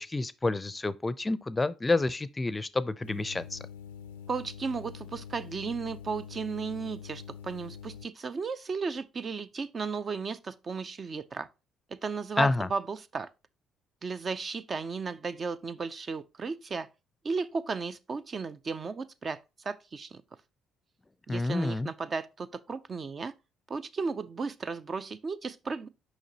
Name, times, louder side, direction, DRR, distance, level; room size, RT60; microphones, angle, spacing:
voice 1, 0.0-3.6 12.4-12.7 21.3-21.9, left 3 dB, 20° left, 0.5 m, -29 dB
sound 1, 3.0-8.1, left 7 dB, 85° left, 0.4 m, -45 dB
voice 2, 4.3-11.5 11.9-13.3 14.0-16.9 17.2-20.2 21.3-23.3 23.7-25.9, right 4 dB, 40° right, 0.5 m, -35 dB
6.5 x 5.1 x 2.9 m
hypercardioid pair, 50°, 0 cm